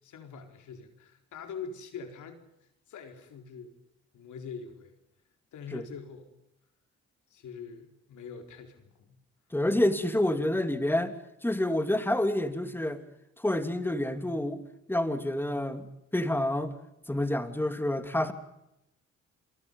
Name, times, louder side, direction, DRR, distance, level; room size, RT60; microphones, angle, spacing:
voice 1, 0.0-2.4 2.9-3.7 4.1-4.9 5.5-6.3 7.3-9.2, left 6 dB, 75° left, 5 dB, 4.4 m, -43 dB
voice 2, 9.5-11.1 11.4-13.0 13.4-14.6 14.9-16.7 17.1-18.3, left 1 dB, 5° left, 8 dB, 2.9 m, -28 dB
28.0 x 23.5 x 5.5 m, 0.84 s
cardioid pair, 90°, 30 cm